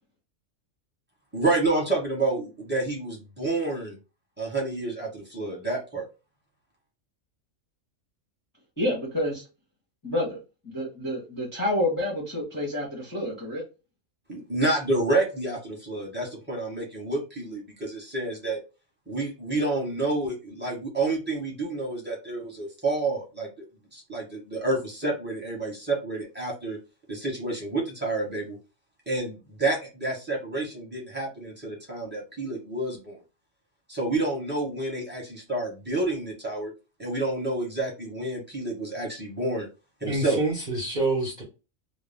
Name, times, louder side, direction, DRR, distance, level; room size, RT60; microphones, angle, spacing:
voice 1, 1.3-4.0 4.4-6.1 14.3-18.6 19.1-23.5 23.9-26.8 27.1-28.6 29.1-33.2 33.9-36.7 37.0-39.7 40.0-40.4, right 2 dB, 10° right, 1.0 m, -29 dB
voice 2, 8.8-9.4 10.0-10.4 10.7-13.6, left 1 dB, 20° left, 0.7 m, -28 dB
voice 3, 40.1-41.4, right 2 dB, 40° right, 0.8 m, -27 dB
2.3 x 2.2 x 3.4 m
omnidirectional pair, 1.3 m